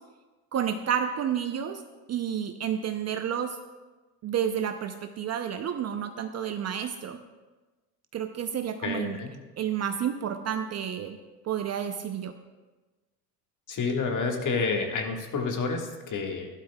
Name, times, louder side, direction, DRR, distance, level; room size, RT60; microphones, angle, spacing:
voice 1, 0.5-1.8 2.1-3.6 4.2-7.2 8.1-9.2 9.6-11.2 11.4-12.3, right 9 dB, 35° right, 7 dB, 0.6 m, -30 dB
voice 2, 8.8-9.3 13.7-16.5, left 4 dB, 40° left, 2 dB, 1.7 m, -29 dB
12.5 x 11.5 x 2.3 m, 1.2 s
hypercardioid pair, 85°, 49 cm